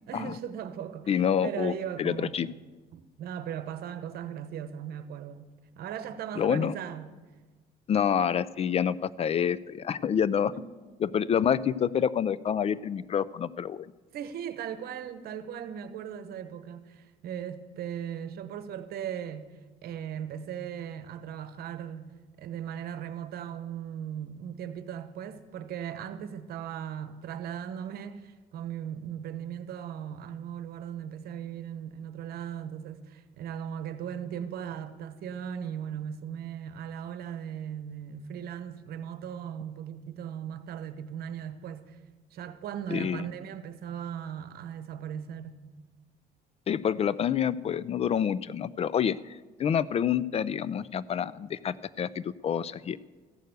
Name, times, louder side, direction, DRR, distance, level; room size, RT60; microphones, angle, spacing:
voice 1, 0.1-2.6 2.9-7.1 10.3-10.7 14.1-19.5 19.8-22.1 22.4-42.0 42.3-45.6, right 9 dB, 65° right, 1.0 m, -38 dB
voice 2, 1.1-1.7 2.0-2.5 6.4-6.7 7.9-10.5 11.0-13.9 42.9-43.2 46.7-53.0, left 8 dB, 35° left, 0.4 m, -27 dB
14.5 x 6.6 x 8.0 m
cardioid pair, 110°, 17 cm